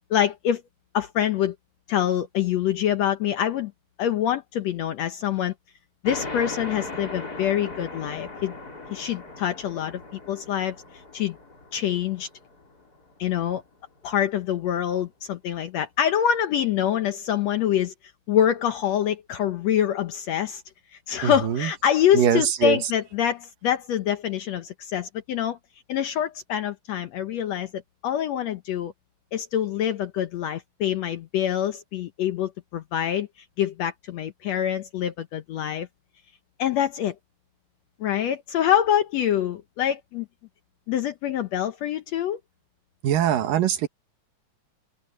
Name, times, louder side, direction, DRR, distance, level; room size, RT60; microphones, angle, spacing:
voice 1, 0.1-0.6 0.9-1.6 1.9-3.7 4.0-5.5 6.0-8.5 8.9-10.0 10.3-10.8 11.1-11.4 11.7-12.3 13.2-13.6 14.0-17.9 18.3-20.6 21.1-25.6 25.9-28.9 29.3-33.3 33.6-35.9 36.6-37.2 38.0-40.3 40.9-42.4, left 10 dB, 70° left, 1.7 m, -25 dB
sound 1, 6.1-13.2, left 3 dB, 25° left, 4.1 m, -38 dB
voice 2, 21.2-21.7 22.1-22.8 43.0-43.9, right 9 dB, 80° right, 3.2 m, -22 dB
open air
omnidirectional pair, 3.9 m